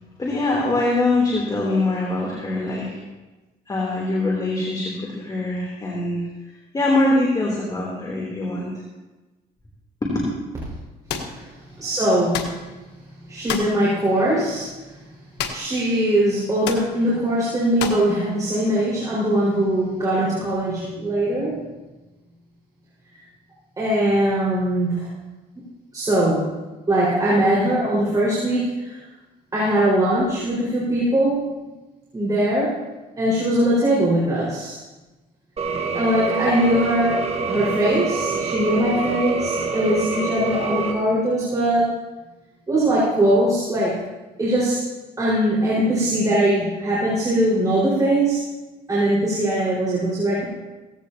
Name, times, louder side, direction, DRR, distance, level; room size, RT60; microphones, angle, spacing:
voice 1, 0.2-3.0 3.7-6.3 6.7-8.7 10.0-10.2 11.2-11.3, left 2 dB, 25° left, -3 dB, 3.2 m, -23 dB
sound 1, 11.1-11.3 12.3-12.6 13.5-13.8 15.4-16.0 16.6-16.9 17.8-18.1, left 7 dB, 85° left, 1.4 m, -28 dB
voice 2, 11.8-12.5 13.3-14.7 15.5-21.6 23.8-25.1 25.5-25.6 25.9-26.5 26.9-29.0 29.5-31.5 32.1-32.8 33.2-34.8 35.9-37.2 37.5-41.9 42.7-44.0 44.4-44.9 45.2-48.5 48.9-50.4, right 1 dB, 20° right, -8 dB, 5.0 m, -21 dB
sound 2, 35.6-40.9, right 4 dB, 35° right, 1.6 m, -26 dB
17.0 x 15.5 x 2.9 m, 1.1 s
cardioid pair, 110°, 17 cm